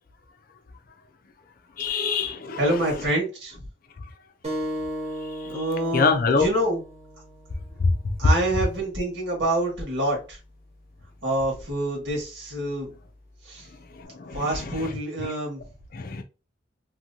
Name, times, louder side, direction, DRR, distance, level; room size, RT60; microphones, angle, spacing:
voice 1, 1.8-2.6 5.4-5.5 5.9-6.4 7.8-8.1 13.9-14.9 15.2-15.3 15.9-16.2, left 4 dB, 50° left, 0.5 m, -25 dB
voice 2, 2.6-3.6 5.4-6.8 8.2-10.4 11.2-12.9 13.4-13.7 14.3-15.6, right 1 dB, 75° right, 1.5 m, -27 dB
sound 1, 4.4-9.6, equal, 35° right, 1.1 m, -37 dB
2.9 x 2.7 x 2.6 m
head